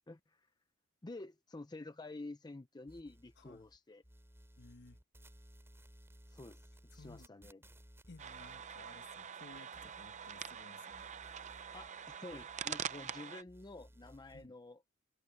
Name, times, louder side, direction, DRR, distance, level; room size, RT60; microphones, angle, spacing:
voice 1, 0.1-0.5 1.0-4.0 6.3-6.7 6.9-7.6 11.7-14.8, left 2 dB, 20° left, 0.5 m, -50 dB
sound 1, 2.9-3.8 4.0-10.6 10.9-13.2 13.5-14.5, equal, 10° right, 5.3 m, -60 dB
voice 2, 3.4-3.7 4.6-5.0 7.0-7.5 8.1-11.1 14.3-14.6, left 3 dB, 50° left, 1.3 m, -58 dB
sound 2, 8.2-13.4, right 8 dB, 35° right, 0.6 m, -45 dB
head